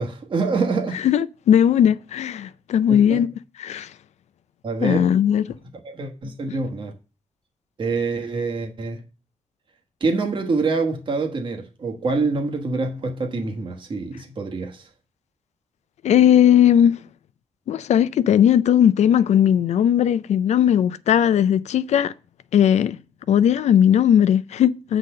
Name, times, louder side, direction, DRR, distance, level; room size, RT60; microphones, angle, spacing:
voice 1, 0.0-1.0 2.9-3.3 4.6-5.1 5.8-6.9 7.8-9.0 10.0-14.8, right 3 dB, 45° right, 1.3 m, -25 dB
voice 2, 1.0-3.3 3.6-3.9 4.8-5.5 16.0-17.0 17.7-22.1 22.5-23.0 23.3-25.0, left 9 dB, 80° left, 0.4 m, -17 dB
7.3 x 4.0 x 6.5 m
wide cardioid pair, 130°, 12 cm